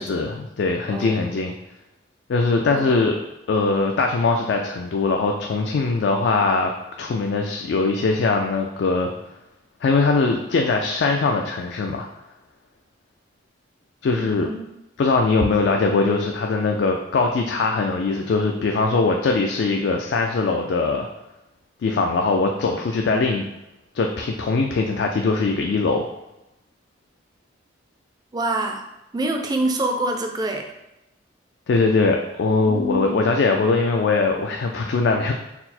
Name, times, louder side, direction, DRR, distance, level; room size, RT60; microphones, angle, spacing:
voice 1, 0.0-1.5 2.3-3.2 3.5-6.7 7.0-9.1 9.8-12.1 14.0-14.5 15.0-21.1 21.8-23.4 23.9-26.1 31.7-35.3, left 3 dB, 65° left, 2 dB, 0.3 m, -21 dB
voice 2, 0.9-1.4 2.7-2.8 14.2-14.7 28.3-28.8 29.1-30.7 32.6-33.2, right 1 dB, 20° right, 4 dB, 0.3 m, -26 dB
4.2 x 2.0 x 4.1 m, 0.92 s
head